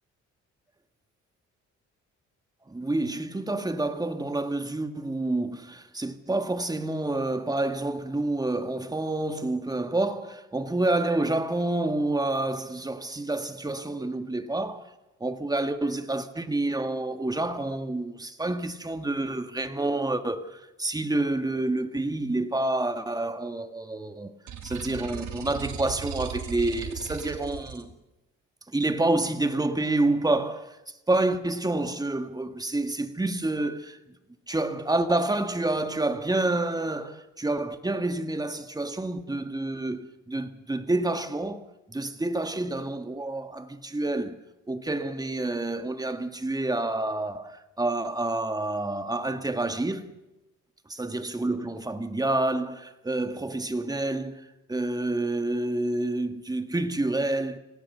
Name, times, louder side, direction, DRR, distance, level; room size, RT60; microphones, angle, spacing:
voice 1, 2.7-14.9 15.2-24.3 24.6-27.9 28.7-34.0 34.5-44.4 44.7-50.1 50.9-57.6, right 2 dB, 15° right, 1.8 m, -28 dB
sound 1, 24.5-27.8, right 8 dB, 70° right, 2.7 m, -37 dB
28.5 x 16.5 x 6.8 m
cardioid pair, 90°, 30 cm